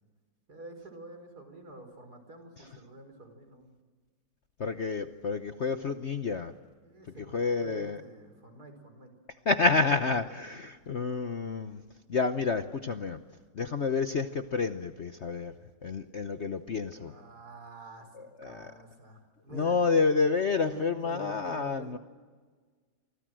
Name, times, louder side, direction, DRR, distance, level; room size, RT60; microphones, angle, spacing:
voice 1, 0.5-3.7 6.8-9.1 16.8-19.8 20.6-22.0, right 2 dB, 55° right, 7 dB, 5.1 m, -47 dB
voice 2, 4.6-6.5 7.3-8.0 9.5-11.8 12.1-13.2 13.6-15.5 15.8-17.1 18.4-18.6 19.5-22.0, left 4 dB, 45° left, 8 dB, 1.0 m, -29 dB
30.0 x 25.0 x 7.7 m, 1.5 s
omnidirectional pair, 2.0 m